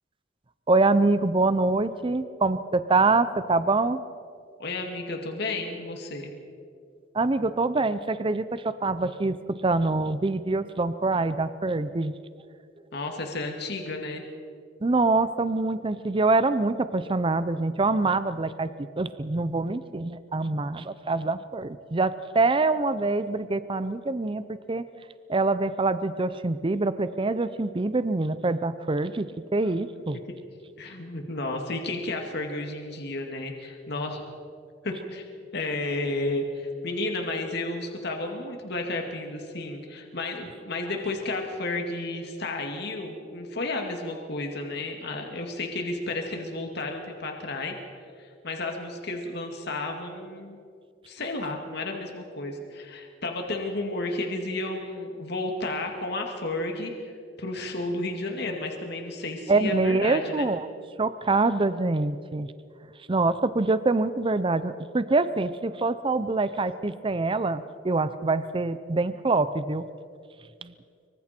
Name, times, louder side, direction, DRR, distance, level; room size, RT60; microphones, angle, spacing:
voice 1, 0.7-4.0 7.1-12.2 14.8-24.8 25.3-29.3 29.5-30.2 59.5-60.7 61.0-62.5 63.1-69.8 70.6-70.7, right 3 dB, 25° right, 13 dB, 0.6 m, -25 dB
voice 2, 4.6-6.3 12.9-14.2 30.3-30.4 30.8-34.2 34.8-35.3 35.5-47.8 48.2-50.6 51.1-57.1 57.4-60.5, left 2 dB, 60° left, 3 dB, 2.2 m, -32 dB
25.0 x 24.0 x 4.4 m, 2.3 s
head